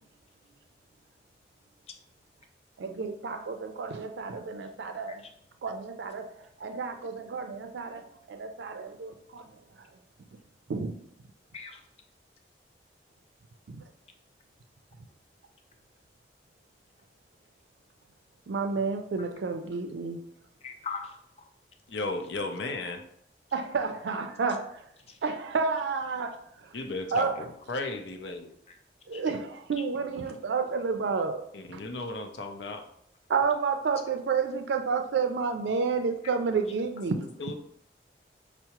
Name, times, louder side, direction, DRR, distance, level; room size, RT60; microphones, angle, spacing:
voice 1, 2.8-5.2 5.6-9.6 10.7-10.9 13.7-13.8 18.5-20.2 23.5-24.9 25.2-26.7 27.1-27.4 29.1-31.4 31.7-31.8 33.3-37.3, right 5 dB, 85° right, 0.4 m, -30 dB
voice 2, 20.6-21.5 25.1-25.2 28.7-28.8 29.1-29.2, left 5 dB, 35° left, 0.4 m, -41 dB
voice 3, 21.9-23.0 26.7-28.5 31.5-32.8 37.4-37.5, left 2 dB, 85° left, 0.5 m, -35 dB
5.5 x 2.0 x 2.9 m
head